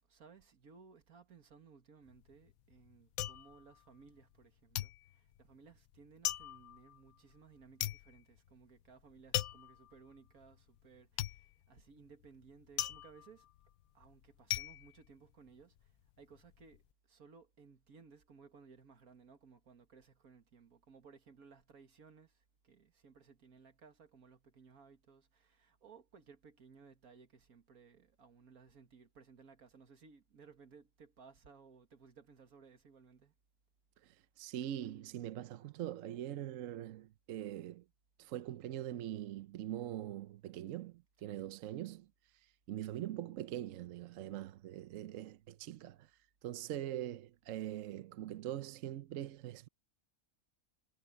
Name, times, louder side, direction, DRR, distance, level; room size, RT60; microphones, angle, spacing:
voice 1, 0.0-13.5 13.9-16.8 17.1-33.3 41.2-41.5, right 5 dB, 85° right, 2.2 m, -60 dB
sound 1, 2.1-4.4 4.7-15.9 16.2-16.8, left 13 dB, 80° left, 1.0 m, -41 dB
voice 2, 34.4-37.8 38.2-42.1 42.7-46.1 46.4-49.7, right 12 dB, 70° right, 1.0 m, -42 dB
omnidirectional pair, 1.5 m